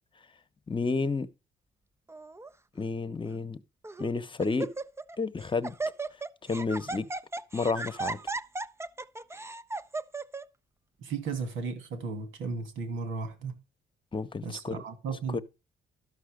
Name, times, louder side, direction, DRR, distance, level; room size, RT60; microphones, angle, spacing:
voice 1, 0.7-1.3 2.7-3.6 4.0-4.7 5.2-5.8 6.4-7.1 7.5-8.2 14.1-14.8 15.3-15.4, left 4 dB, 25° left, 1.1 m, -30 dB
Laughter, 2.1-2.5 3.3-3.4 3.8-4.1 4.4-5.2 5.4-10.4, right 3 dB, 15° right, 0.6 m, -36 dB
voice 2, 11.0-13.6 14.4-15.4, right 4 dB, 85° right, 2.7 m, -35 dB
12.5 x 5.7 x 5.2 m
cardioid pair, 90°, 20 cm